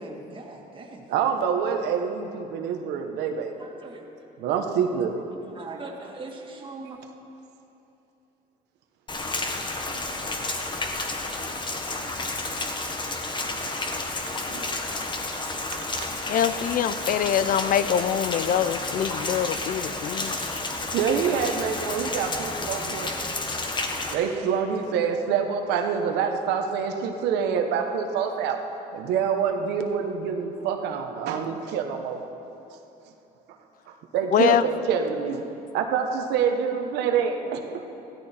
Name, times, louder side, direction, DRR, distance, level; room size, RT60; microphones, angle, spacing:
voice 1, 0.0-1.0 3.6-4.1 5.4-7.0, right 3 dB, 30° right, 1 dB, 2.0 m, -40 dB
voice 2, 1.1-3.6 4.4-5.2 9.9-10.1 14.5-14.7 15.7-16.1 17.3-17.4 20.9-23.2 24.1-28.6 28.9-32.2 33.9-35.4 35.7-37.9, right 7 dB, 90° right, 4 dB, 1.1 m, -26 dB
Rain, 9.1-24.1, left 2 dB, 25° left, 1.3 m, -31 dB
voice 3, 16.3-20.6 34.3-34.7, left 9 dB, 55° left, 14 dB, 0.5 m, -24 dB
15.5 x 13.5 x 4.4 m, 2.8 s
cardioid pair, 110°, 17 cm